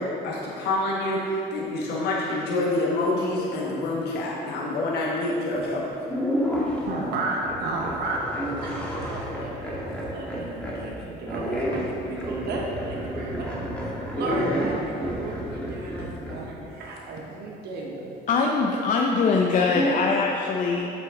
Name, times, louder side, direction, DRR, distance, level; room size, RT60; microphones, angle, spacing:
voice 1, 0.0-5.8, left 2 dB, 75° left, -5 dB, 1.4 m, -27 dB
sound 1, 5.5-5.7 6.1-6.9 7.4-10.8 11.3-16.5 19.6-20.1, equal, 5° left, 1.8 m, -30 dB
voice 2, 6.9-9.7 10.1-13.5 14.1-18.1, right 2 dB, 70° right, -2 dB, 1.2 m, -33 dB
voice 3, 18.3-20.9, left 4 dB, 50° left, 0 dB, 0.6 m, -22 dB
7.7 x 6.4 x 3.8 m, 2.8 s
cardioid pair, 110°, 17 cm